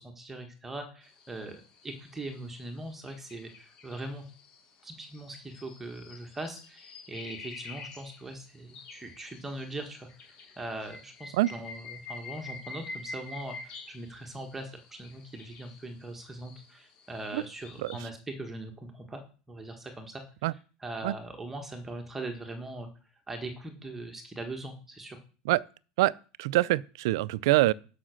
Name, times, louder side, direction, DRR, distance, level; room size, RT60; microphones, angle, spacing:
voice 1, 0.0-4.2 4.8-19.2 19.5-20.2 20.8-22.9 23.3-25.2, right 2 dB, 10° right, 1.5 m, -41 dB
sound 1, 1.0-18.0, left 4 dB, 40° left, 4.2 m, -48 dB
voice 2, 26.0-27.7, right 18 dB, 80° right, 0.5 m, -25 dB
11.5 x 5.9 x 6.4 m
supercardioid pair, 150°, 2 cm